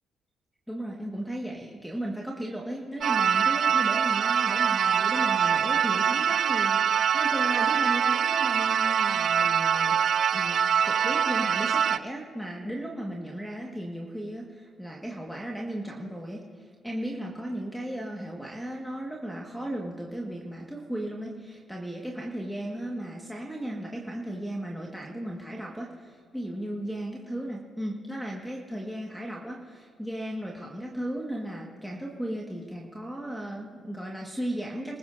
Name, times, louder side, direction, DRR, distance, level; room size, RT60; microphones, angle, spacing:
voice 1, 0.7-10.0 10.3-35.0, right 1 dB, ahead, -1 dB, 1.7 m, -35 dB
sound 1, 3.0-12.0, right 8 dB, 60° right, 0.4 m, -24 dB
27.0 x 14.5 x 2.7 m, 2.1 s
cardioid pair, 90°, 0 cm